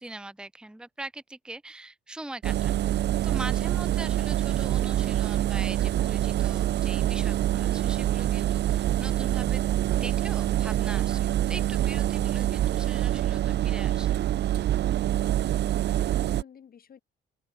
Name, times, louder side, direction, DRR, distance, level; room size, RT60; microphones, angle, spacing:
voice 1, 0.0-2.9 3.2-14.2, right 2 dB, 5° right, 0.8 m, -42 dB
Engine, 2.4-16.4, right 13 dB, 60° right, 0.5 m, -26 dB
voice 2, 15.0-17.0, left 8 dB, 50° left, 1.9 m, -51 dB
cardioid pair, 90°, 20 cm